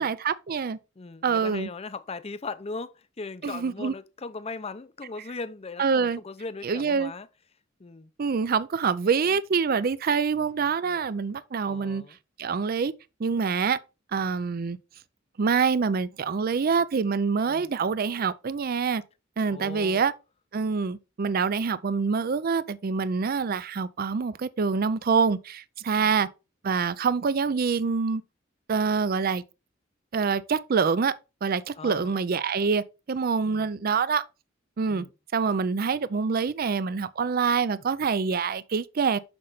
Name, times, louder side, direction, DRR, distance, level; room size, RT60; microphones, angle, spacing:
voice 1, 0.0-0.8 1.2-1.7 3.4-3.9 5.8-6.2 6.6-7.1 8.2-12.0 12.4-12.9 13.2-13.8 14.1-14.8 15.4-19.0 19.4-20.1 20.5-26.3 26.6-28.2 28.7-29.4 30.1-31.1 31.4-34.2 34.8-35.1 35.3-39.2, right 5 dB, 50° right, 0.4 m, -26 dB
voice 2, 1.0-7.3 7.8-8.1 11.7-12.2 17.5-17.7 19.5-20.0 26.0-26.2 31.8-32.2 33.4-33.7 34.9-35.1, left 3 dB, 30° left, 0.6 m, -39 dB
6.4 x 6.0 x 4.0 m
head